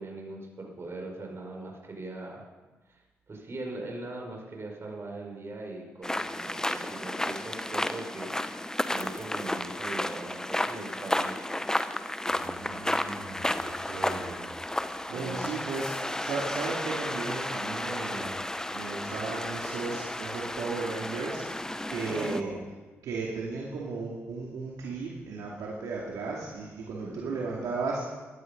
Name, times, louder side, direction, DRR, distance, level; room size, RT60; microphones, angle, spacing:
voice 1, 0.0-2.4 2.9-3.0 3.3-11.5 15.1-15.5 22.0-22.6 27.0-27.4, right 2 dB, 45° right, 1 dB, 5.1 m, -40 dB
sound 1, 6.0-22.4, left 1 dB, 10° left, 0.9 m, -32 dB
voice 2, 12.3-14.5 14.8-15.9 16.2-18.3 18.7-21.4 21.9-22.6 23.0-28.0, right 4 dB, 80° right, -3 dB, 2.4 m, -35 dB
16.0 x 12.0 x 5.3 m, 1.2 s
supercardioid pair, 50°, 6 cm